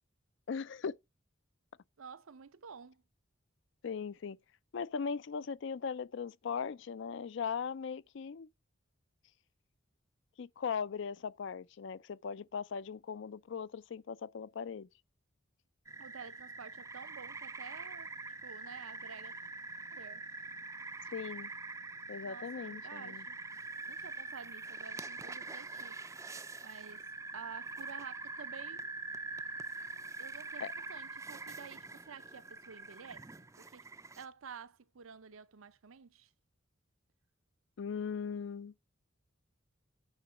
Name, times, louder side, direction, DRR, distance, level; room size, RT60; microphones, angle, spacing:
voice 1, 0.5-1.0 3.8-4.4 4.7-8.5 10.4-14.9 21.1-21.5 22.1-23.2 30.6-30.7 37.8-38.7, left 6 dB, 60° left, 0.4 m, -39 dB
voice 2, 2.0-3.0 16.0-19.4 19.9-20.2 22.2-23.4 23.9-26.0 26.6-28.8 30.2-33.3 33.6-33.9 34.2-36.3, right 6 dB, 80° right, 0.6 m, -51 dB
sound 1, 15.9-34.3, right 3 dB, 15° right, 0.4 m, -44 dB
8.9 x 3.8 x 6.9 m
head